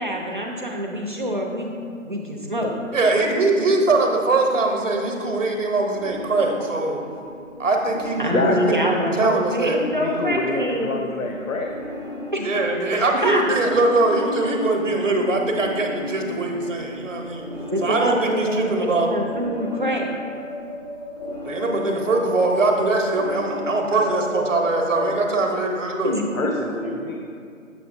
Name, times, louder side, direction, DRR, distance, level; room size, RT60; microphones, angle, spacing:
voice 1, 0.0-1.7 2.0-2.7 8.2-11.0 12.3-12.5 13.2-13.4 17.7-20.1 26.0-26.2 26.8-26.9, right 1 dB, 40° right, 0 dB, 0.6 m, -25 dB
voice 2, 2.9-7.0 7.6-9.8 12.4-17.4 17.8-19.1 21.4-26.2, right 2 dB, 65° right, 2 dB, 1.0 m, -22 dB
sound 1, 5.4-25.1, left 1 dB, 30° left, 0.6 m, -35 dB
voice 3, 8.3-9.0 10.0-11.7 26.3-27.2, left 3 dB, 80° left, 2 dB, 0.6 m, -26 dB
6.9 x 5.7 x 2.6 m, 2.3 s
figure-of-eight pair, 165°, 40 cm